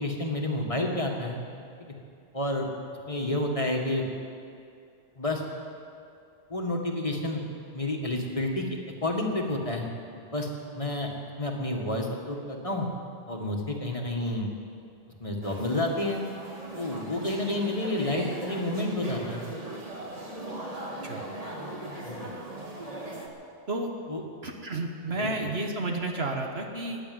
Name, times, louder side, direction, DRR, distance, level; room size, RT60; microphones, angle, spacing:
voice 1, 0.0-1.4 1.8-1.9 2.3-2.7 3.1-4.1 5.2-5.4 6.5-7.4 7.7-8.7 9.0-9.9 10.2-11.1 11.4-12.9 13.3-14.5 15.2-16.2 16.8-19.4 22.0-22.3 24.1-24.2 25.2-25.5, left 1 dB, 30° left, 1 dB, 1.8 m, -30 dB
sound 1, 15.4-23.3, right 1 dB, 30° right, 2.0 m, -38 dB
voice 2, 24.4-27.0, right 2 dB, 60° right, 2 dB, 1.5 m, -31 dB
15.0 x 10.0 x 9.4 m, 2.5 s
omnidirectional pair, 1.2 m